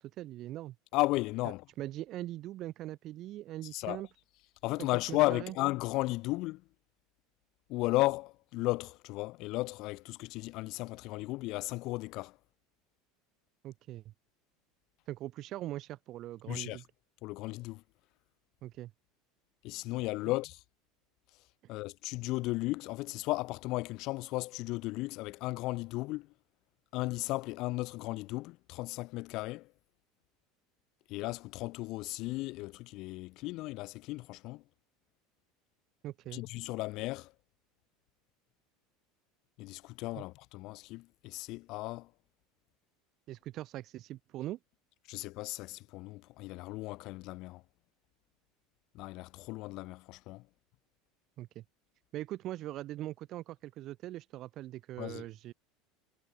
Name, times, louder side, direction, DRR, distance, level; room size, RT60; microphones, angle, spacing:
voice 1, 0.0-0.8 1.8-4.1 5.1-5.5 13.6-14.1 15.1-16.8 18.6-18.9 36.0-36.4 40.2-40.3 43.3-44.6 51.4-51.6 52.1-55.5, right 14 dB, 40° right, 2.5 m, -41 dB
voice 2, 0.9-1.6 3.7-4.0 4.6-6.6 7.7-12.4 16.5-16.8 17.2-17.8 19.6-20.6 21.7-26.3 26.9-29.7 31.1-34.6 36.3-37.3 39.6-42.1 45.1-47.6 48.9-50.4 55.0-55.2, left 20 dB, 50° left, 0.6 m, -35 dB
supercardioid pair, 155°, 0 cm